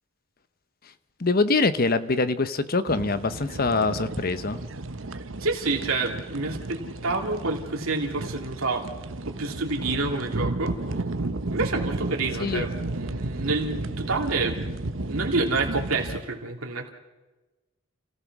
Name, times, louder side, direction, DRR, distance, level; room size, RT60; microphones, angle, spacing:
voice 1, 1.2-4.6 12.4-12.6, left 3 dB, 45° left, 13 dB, 0.9 m, -24 dB
sound 1, 2.9-16.2, right 2 dB, 65° right, 1.0 m, -33 dB
voice 2, 5.1-8.8 9.2-10.8 11.5-14.6 15.1-16.9, right 3 dB, 90° right, 1 dB, 2.8 m, -28 dB
29.0 x 15.5 x 6.1 m, 1.1 s
head